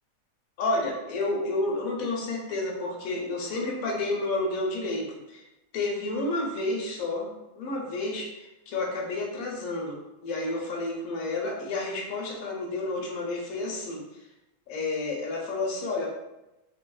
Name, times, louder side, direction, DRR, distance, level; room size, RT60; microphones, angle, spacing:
voice 1, 0.6-5.4 5.7-14.0 14.7-16.2, left 2 dB, 80° left, -1 dB, 1.1 m, -30 dB
3.2 x 2.3 x 2.2 m, 0.95 s
omnidirectional pair, 1.5 m